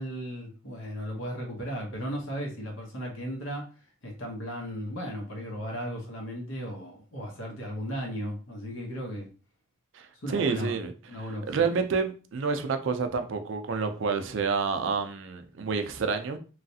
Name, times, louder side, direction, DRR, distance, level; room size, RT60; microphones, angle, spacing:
voice 1, 0.0-3.7 4.0-9.3 10.2-10.8 11.1-11.7, equal, 70° left, 0.9 m, -36 dB
voice 2, 9.9-10.9 11.5-16.4, right 5 dB, 60° right, 0.4 m, -29 dB
3.1 x 2.4 x 2.7 m
head